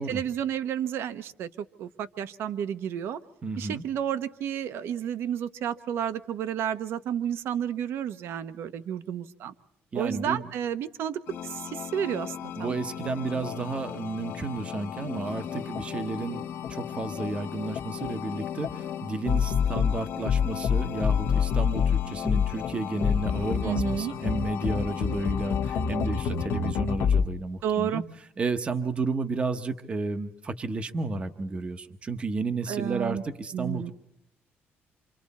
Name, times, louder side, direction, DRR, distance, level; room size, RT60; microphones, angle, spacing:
voice 1, 0.0-3.2 3.6-9.5 9.9-12.8 13.3-13.4 23.6-24.1 27.6-28.0 32.7-33.2 33.5-33.9, right 9 dB, 70° right, 12 dB, 1.0 m, -31 dB
voice 2, 3.4-3.8 9.9-10.5 12.6-28.0 28.4-33.9, right 3 dB, 25° right, 8 dB, 1.0 m, -32 dB
sound 1, 11.3-27.2, left 7 dB, 70° left, 1.0 m, -29 dB
28.0 x 26.0 x 4.2 m, 0.76 s
cardioid pair, 150°, 4 cm